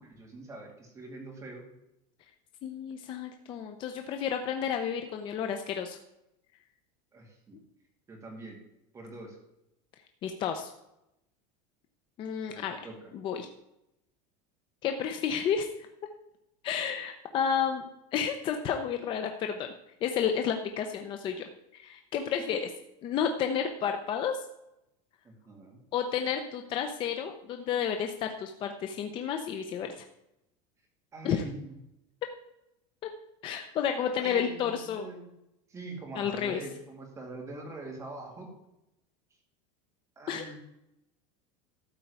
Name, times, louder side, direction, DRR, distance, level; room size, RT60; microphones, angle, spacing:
voice 1, 0.0-1.7 7.1-7.6 8.1-8.6 8.9-9.4 12.4-13.1 25.2-25.8 31.1-31.7 34.2-35.3 35.7-38.5 40.2-40.6, right 2 dB, 15° right, 0 dB, 2.3 m, -43 dB
voice 2, 2.6-6.0 7.5-7.6 10.2-10.7 12.2-12.8 13.1-13.5 14.8-15.7 16.6-17.9 18.1-19.7 20.0-21.4 21.7-22.6 23.0-24.4 25.9-30.0 31.2-31.4 33.4-35.1 36.2-36.6 40.3-40.5, left 8 dB, 25° left, 5 dB, 0.7 m, -31 dB
13.0 x 4.6 x 8.2 m, 0.86 s
supercardioid pair, 175°, 19 cm